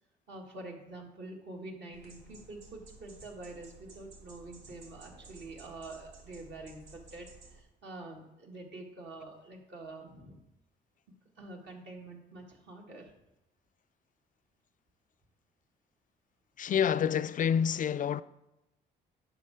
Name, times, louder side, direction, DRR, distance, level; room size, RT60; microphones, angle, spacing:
voice 1, 0.3-10.4 11.4-13.1, right 2 dB, 60° right, 2.0 m, -46 dB
sound 1, 1.9-7.6, right 3 dB, 85° right, 1.2 m, -54 dB
voice 2, 16.6-18.2, left 8 dB, 40° left, 0.4 m, -28 dB
9.3 x 6.1 x 3.6 m
hypercardioid pair, 50°, 20 cm